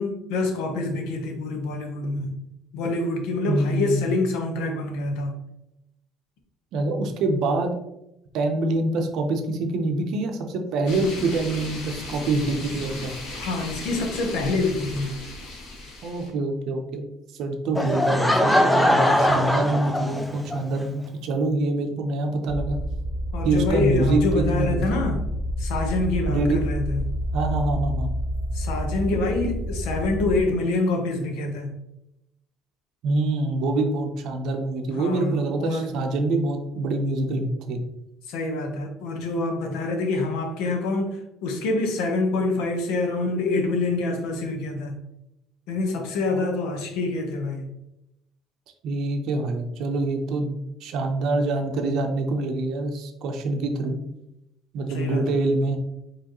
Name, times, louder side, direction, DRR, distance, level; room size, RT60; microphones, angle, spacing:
voice 1, 0.0-2.4 2.7-5.4 13.3-15.1 23.3-25.2 25.6-27.0 28.5-31.8 35.0-35.9 38.3-45.0 45.7-47.7 54.9-55.5, left 2 dB, 85° left, 4 dB, 0.9 m, -26 dB
voice 2, 3.5-4.2 6.7-7.7 8.3-13.2 16.0-17.0 17.3-22.8 23.4-25.0 26.3-26.6 27.3-28.1 33.0-37.8 46.3-46.6 48.8-50.5 50.8-54.0 54.7-55.8, right 2 dB, 60° right, 4 dB, 0.6 m, -25 dB
sound 1, 10.9-16.3, left 2 dB, 65° left, 1.3 m, -36 dB
Laughter / Crowd, 17.8-20.6, left 1 dB, 5° left, 0.4 m, -21 dB
sound 2, 22.5-30.4, equal, 15° right, 0.8 m, -28 dB
4.7 x 3.1 x 3.0 m, 0.86 s
cardioid pair, 150°, 0 cm